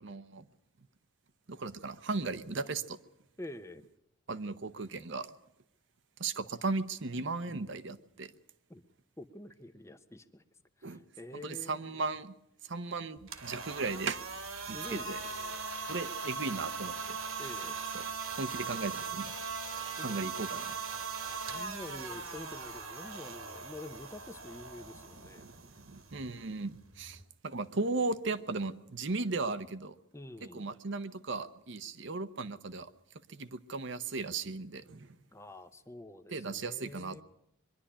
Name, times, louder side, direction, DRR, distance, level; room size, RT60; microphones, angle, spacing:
voice 1, 0.0-0.4 1.5-3.0 4.3-5.3 6.2-8.3 10.8-11.0 11.3-12.3 12.6-14.2 14.7-15.2 15.9-17.2 17.9-18.1 18.4-19.3 20.0-20.8 25.3-30.0 30.5-32.9 33.3-35.1 36.3-37.2, right 3 dB, 55° right, 12 dB, 0.8 m, -36 dB
voice 2, 3.4-3.8 8.7-8.8 9.2-10.4 10.8-11.9 14.6-15.6 17.4-17.8 20.0-20.5 21.3-25.6 30.1-30.7 35.3-37.2, left 1 dB, 15° left, 10 dB, 0.7 m, -47 dB
sound 1, 13.2-27.2, right 5 dB, 80° right, 2.4 m, -40 dB
23.0 x 11.5 x 9.9 m, 0.79 s
head